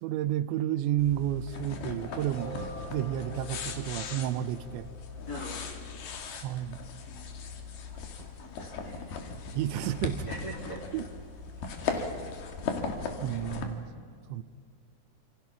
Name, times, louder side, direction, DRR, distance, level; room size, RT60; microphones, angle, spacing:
voice 1, 0.0-2.6 2.9-4.9 6.3-6.8 9.6-10.2 10.9-11.1 11.8-12.1 13.2-13.9 14.3-14.4, right 12 dB, 85° right, 14 dB, 3.0 m, -31 dB
sound 1, 1.0-13.7, left 5 dB, 65° left, 3.8 m, -38 dB
sound 2, 2.0-5.9, right 1 dB, 20° right, 7.2 m, -45 dB
voice 2, 5.3-6.2 7.1-7.3 8.4-9.2 10.3-10.8, equal, 20° left, -1 dB, 3.7 m, -42 dB
28.0 x 27.5 x 5.9 m, 2.2 s
omnidirectional pair, 5.1 m